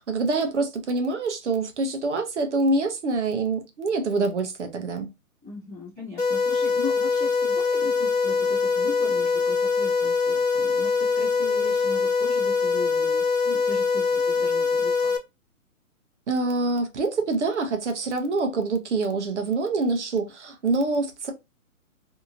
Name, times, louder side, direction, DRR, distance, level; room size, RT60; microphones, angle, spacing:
voice 1, 0.0-5.1 16.3-21.3, right 3 dB, 55° right, 0.7 m, -25 dB
voice 2, 5.4-15.1, left 4 dB, 5° left, 0.6 m, -39 dB
sound 1, 6.2-15.2, left 5 dB, 65° left, 1.0 m, -23 dB
2.7 x 2.6 x 2.4 m
hypercardioid pair, 175°, 42 cm